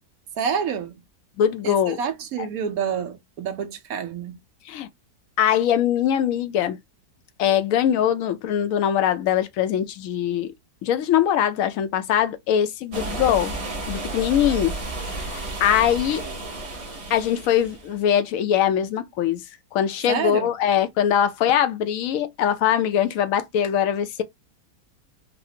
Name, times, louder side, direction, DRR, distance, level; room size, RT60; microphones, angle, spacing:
voice 1, 0.4-1.0 1.6-4.4 20.1-20.5, right 7 dB, 65° right, 1.1 m, -28 dB
voice 2, 1.4-2.0 4.7-4.9 5.4-6.8 7.4-10.5 10.8-13.5 13.9-14.7 15.0-16.2 17.1-19.4 19.7-24.2, left 10 dB, 75° left, 0.7 m, -22 dB
sound 1, 12.9-18.0, right 2 dB, 40° right, 0.5 m, -32 dB
4.1 x 2.0 x 2.8 m
omnidirectional pair, 1.9 m